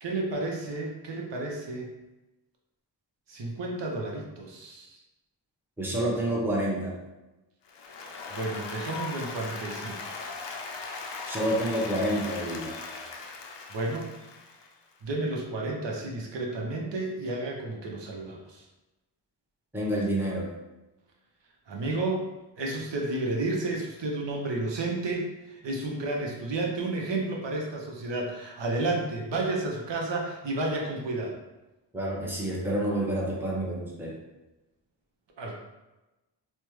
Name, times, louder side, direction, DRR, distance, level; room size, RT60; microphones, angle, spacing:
voice 1, 0.0-1.9 3.3-5.0 8.3-10.1 13.7-14.1 15.0-18.6 21.7-22.2 22.6-25.2 25.5-31.3 35.4-35.6, right 2 dB, 70° right, -1 dB, 0.8 m, -31 dB
voice 2, 5.8-6.9 11.3-12.7 19.7-20.5 31.9-34.1, right 1 dB, 5° right, -5 dB, 0.8 m, -28 dB
Applause, 7.7-14.9, left 4 dB, 70° left, 0.5 m, -39 dB
3.3 x 2.1 x 3.1 m, 1.0 s
wide cardioid pair, 70°, 45 cm